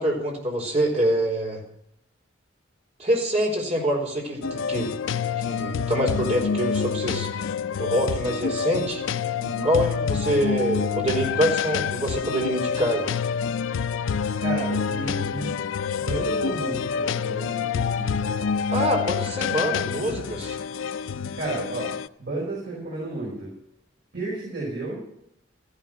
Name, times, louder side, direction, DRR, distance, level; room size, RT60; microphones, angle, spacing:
voice 1, 0.0-1.6 3.0-4.9 5.4-7.4 7.8-9.0 9.6-13.1 18.7-20.6, equal, 35° right, -1 dB, 4.0 m, -25 dB
sound 1, 4.4-22.1, left 6 dB, 80° left, 0.4 m, -27 dB
voice 2, 9.4-9.7 14.4-15.5 16.0-18.4 21.3-21.9 22.2-23.5 24.1-25.0, right 2 dB, 55° right, -6 dB, 5.4 m, -32 dB
15.0 x 11.5 x 5.8 m, 0.74 s
head